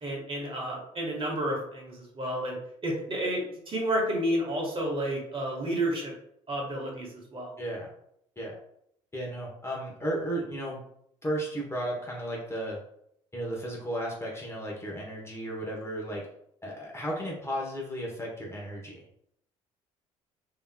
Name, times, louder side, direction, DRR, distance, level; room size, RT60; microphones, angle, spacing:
voice 1, 0.0-2.6 2.8-6.1 6.5-7.5, right 1 dB, 35° right, -1 dB, 1.4 m, -31 dB
voice 2, 7.6-7.9 8.4-8.5 9.1-10.8 11.2-12.8 13.3-16.2 16.6-19.0, right 1 dB, 15° left, -3 dB, 1.0 m, -34 dB
3.4 x 2.9 x 2.2 m, 0.71 s
hypercardioid pair, 60°, 16 cm